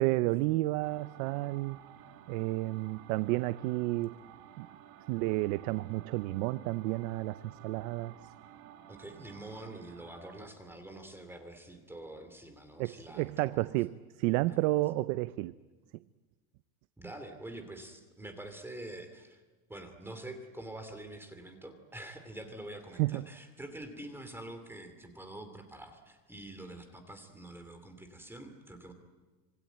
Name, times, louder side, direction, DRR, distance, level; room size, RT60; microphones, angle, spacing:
voice 1, 0.0-1.8 2.3-4.2 4.6-4.7 5.1-8.1 12.8-15.5 23.0-23.2, right 19 dB, 70° right, 14 dB, 0.8 m, -31 dB
sound 1, 0.8-10.4, right 11 dB, 50° right, 2.3 m, -54 dB
voice 2, 8.9-13.7 17.0-19.4 19.7-28.9, right 1 dB, 5° right, 7 dB, 2.7 m, -46 dB
26.5 x 23.5 x 9.2 m, 1.3 s
cardioid pair, 165°, 43 cm